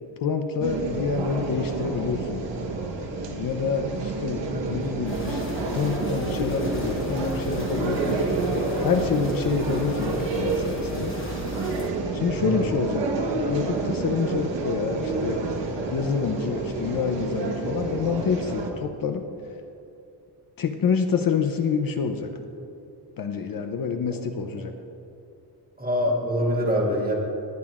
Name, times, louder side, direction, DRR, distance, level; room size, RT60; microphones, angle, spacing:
voice 1, 0.0-2.5 3.3-5.4 5.8-8.5 8.8-11.2 12.1-13.1 13.5-15.4 15.9-19.2 20.6-22.3 23.2-24.7, left 6 dB, 55° left, 6 dB, 0.6 m, -27 dB
sound 1, 0.6-18.7, right 3 dB, 90° right, 1.3 m, -29 dB
voice 2, 4.5-4.9 12.3-12.6 13.2-13.4 24.6-24.7 25.8-27.1, equal, 20° right, -2 dB, 1.7 m, -26 dB
sound 2, 5.1-11.9, left 3 dB, 30° left, 1.0 m, -37 dB
20.0 x 9.0 x 2.5 m, 2.7 s
wide cardioid pair, 160°, 42 cm